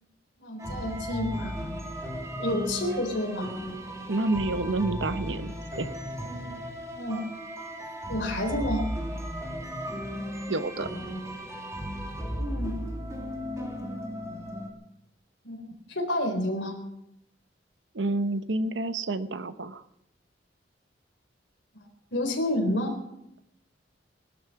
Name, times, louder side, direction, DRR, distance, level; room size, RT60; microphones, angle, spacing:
voice 1, 0.4-1.5 2.4-3.5 7.0-7.2 8.1-8.9 12.4-12.7 15.4-16.8 22.1-23.0, left 1 dB, 80° left, 3 dB, 4.0 m, -29 dB
sound 1, 0.6-14.7, equal, 15° right, 2.3 m, -35 dB
voice 2, 4.1-5.9 10.5-10.9 17.9-19.8, right 2 dB, 80° right, 12 dB, 1.0 m, -29 dB
19.5 x 12.0 x 5.8 m, 0.79 s
head